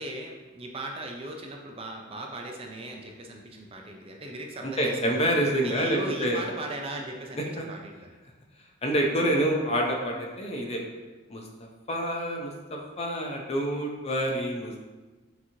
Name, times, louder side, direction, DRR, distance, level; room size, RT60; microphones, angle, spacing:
voice 1, 0.0-5.3 5.6-8.1, right 1 dB, 30° right, 1 dB, 0.4 m, -38 dB
voice 2, 4.6-6.4 7.6-7.7 8.8-10.8 11.3-11.4 11.9-12.5 13.0-14.8, equal, 30° left, 0 dB, 0.6 m, -27 dB
5.9 x 2.9 x 2.7 m, 1.2 s
head